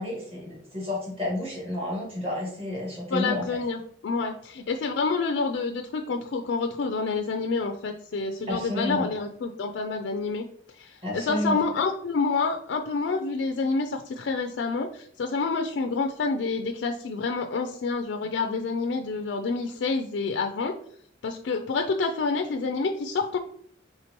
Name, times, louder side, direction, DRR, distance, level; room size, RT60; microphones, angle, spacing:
voice 1, 0.0-3.5 8.5-9.1 11.0-11.6, left 1 dB, 30° right, -3 dB, 1.7 m, -30 dB
voice 2, 3.1-10.5 10.8-20.8 21.2-23.4, left 4 dB, 65° left, 5 dB, 0.3 m, -28 dB
4.3 x 3.5 x 2.9 m, 0.63 s
head